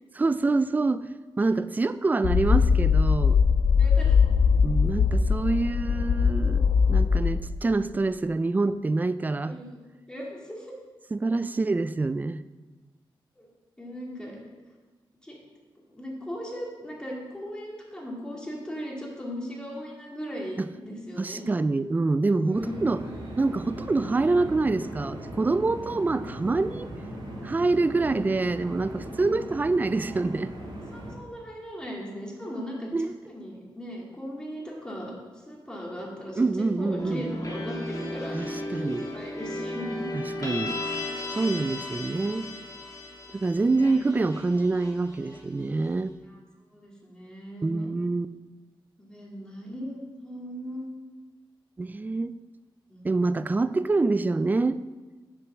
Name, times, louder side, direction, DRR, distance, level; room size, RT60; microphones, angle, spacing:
voice 1, 0.1-1.0 1.4-3.4 4.6-9.6 11.1-12.4 20.6-20.7 21.2-23.0 23.4-26.9 27.4-30.5 32.9-33.1 36.4-37.2 38.3-39.1 40.1-40.8 41.4-42.5 43.3-46.1 47.6-48.3 51.8-52.3 53.0-54.8, right 3 dB, 20° right, 13 dB, 0.3 m, -26 dB
sound 1, 2.2-7.6, left 6 dB, 70° left, 0.5 m, -21 dB
voice 2, 3.8-4.2 9.4-9.8 10.1-10.7 13.4-13.5 13.8-14.4 15.2-15.4 15.9-21.4 22.4-22.7 23.0-23.2 27.2-27.4 29.8-30.2 30.9-32.9 33.3-35.1 35.5-40.1 46.3-46.4 46.7-47.9 49.0-50.9 52.9-53.1, equal, 10° left, -3 dB, 2.5 m, -38 dB
sound 2, 22.5-31.1, right 1 dB, 60° right, 2.7 m, -39 dB
sound 3, 37.0-45.8, left 2 dB, 40° left, 2.6 m, -35 dB
7.6 x 6.4 x 6.1 m, 1.3 s
wide cardioid pair, 105°, 9 cm